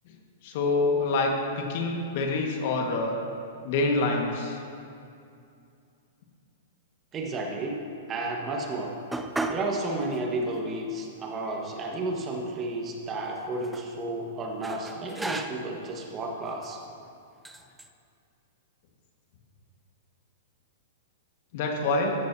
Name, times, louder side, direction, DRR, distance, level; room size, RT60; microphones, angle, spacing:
voice 1, 0.4-3.2 3.6-4.6 21.5-22.2, left 3 dB, 55° left, 1 dB, 1.9 m, -26 dB
voice 2, 7.1-7.8 8.1-8.9 9.5-16.8, right 2 dB, 25° right, 0 dB, 1.7 m, -32 dB
sound 1, 9.1-9.7 10.1-10.2 11.0-11.1 11.4-12.4 13.3-13.9 14.6-15.8 16.5-16.8 17.4-17.9, right 2 dB, 5° right, 0.6 m, -35 dB
14.0 x 13.5 x 2.9 m, 2.5 s
hypercardioid pair, 115°, 0 cm